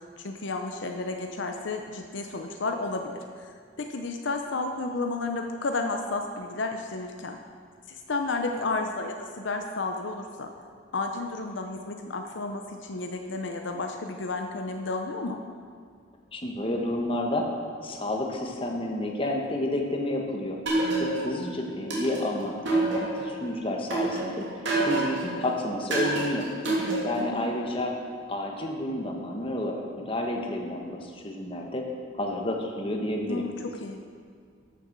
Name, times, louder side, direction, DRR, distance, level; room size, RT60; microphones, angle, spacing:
voice 1, 0.2-7.4 7.9-10.5 10.9-15.4 26.7-27.5 33.3-34.0, left 3 dB, 65° left, 4 dB, 0.7 m, -32 dB
voice 2, 16.3-17.5 17.8-20.6 21.0-24.4 24.8-26.5 27.0-27.9 28.3-31.9 32.1-33.5, left 1 dB, 25° left, 1 dB, 1.3 m, -30 dB
sound 1, 20.7-21.4 21.9-23.4 23.9-25.3 25.9-27.3, right 2 dB, 65° right, 3.1 m, -27 dB
13.5 x 7.0 x 6.0 m, 2.1 s
head